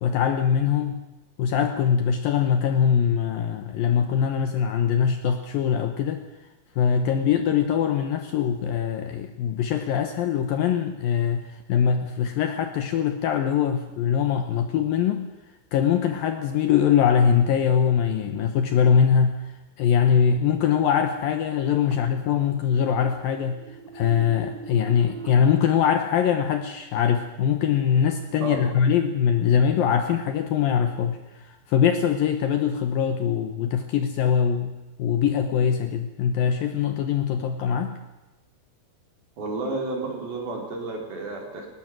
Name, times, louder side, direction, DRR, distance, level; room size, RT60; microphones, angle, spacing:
voice 1, 0.0-1.0 1.4-6.2 6.8-15.3 15.7-34.7 35.0-38.0, left 8 dB, 75° left, 7 dB, 2.3 m, -22 dB
sound 1, 21.1-25.3, right 5 dB, 15° right, 1.8 m, -42 dB
voice 2, 28.4-28.8 39.4-41.8, right 3 dB, 60° right, 0 dB, 5.8 m, -31 dB
19.5 x 19.0 x 7.5 m, 1.1 s
omnidirectional pair, 5.1 m